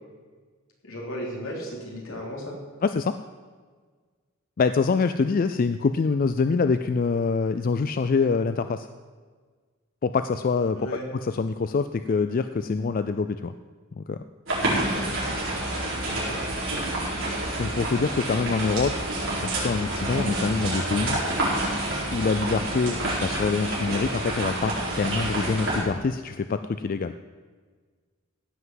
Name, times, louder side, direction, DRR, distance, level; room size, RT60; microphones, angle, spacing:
voice 1, 0.8-2.6 10.7-11.0 16.0-16.4, equal, 80° left, -2 dB, 3.5 m, -35 dB
voice 2, 2.8-3.2 4.6-8.9 10.0-13.5 14.0-14.2 17.6-19.0 19.4-21.2 22.1-27.1, left 4 dB, 45° left, 10 dB, 0.4 m, -25 dB
sound 1, 14.5-25.8, right 1 dB, 65° right, 4.4 m, -28 dB
15.5 x 5.7 x 7.7 m, 1.5 s
head